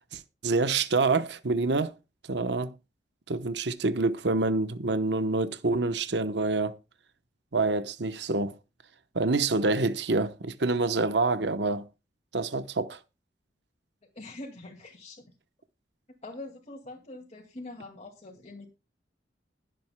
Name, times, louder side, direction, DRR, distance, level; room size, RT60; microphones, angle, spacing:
voice 1, 0.1-1.9 2.3-2.7 3.3-6.8 7.5-8.5 9.1-11.9 12.3-13.0, right 3 dB, 70° right, 1.0 m, -27 dB
voice 2, 14.1-15.3 16.2-18.7, left 2 dB, 40° left, 2.1 m, -44 dB
20.5 x 7.7 x 2.2 m
head